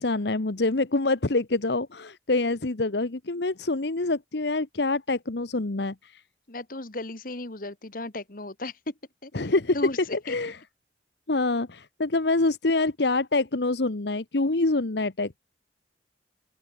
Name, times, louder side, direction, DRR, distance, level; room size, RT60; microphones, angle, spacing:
voice 1, 0.0-6.1 9.3-9.8 10.3-10.6 11.3-15.4, left 2 dB, 65° left, 1.1 m, -26 dB
voice 2, 6.5-8.9 9.2-10.3, left 2 dB, 50° left, 1.7 m, -36 dB
open air
head